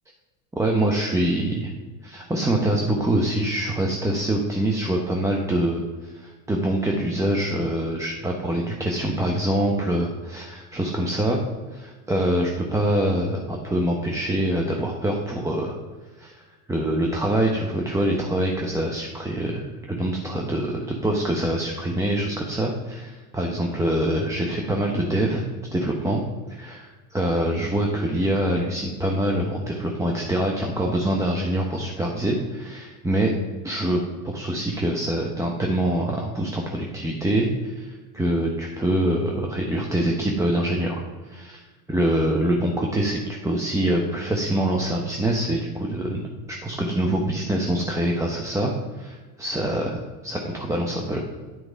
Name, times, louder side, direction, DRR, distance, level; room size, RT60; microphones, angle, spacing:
voice 1, 0.6-1.7 2.0-11.4 11.7-15.8 16.2-16.4 16.7-25.4 25.7-26.2 26.5-33.3 33.6-41.6 41.9-46.2 46.5-50.0 50.2-51.2, right 1 dB, 5° right, -1 dB, 0.9 m, -25 dB
9.9 x 4.7 x 5.1 m, 1.3 s
hypercardioid pair, 100°, 45 cm